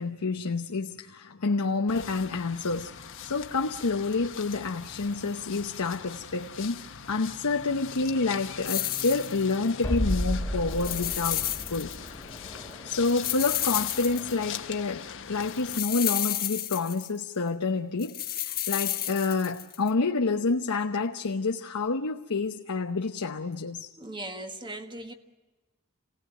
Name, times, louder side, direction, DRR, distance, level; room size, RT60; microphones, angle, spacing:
voice 1, 0.0-12.2 12.8-23.9, left 3 dB, 85° left, 0.9 m, -29 dB
sound 1, 1.9-15.8, left 7 dB, 60° left, 1.3 m, -42 dB
sound 2, 8.7-9.7 10.7-12.1 12.4-12.5 13.0-14.6 15.4-17.2 18.0-19.9, left 12 dB, 45° left, 1.4 m, -31 dB
sound 3, 9.8-14.9, equal, 10° left, 2.2 m, -34 dB
voice 2, 24.0-25.1, right 1 dB, 20° right, 1.6 m, -38 dB
28.0 x 18.0 x 9.4 m
head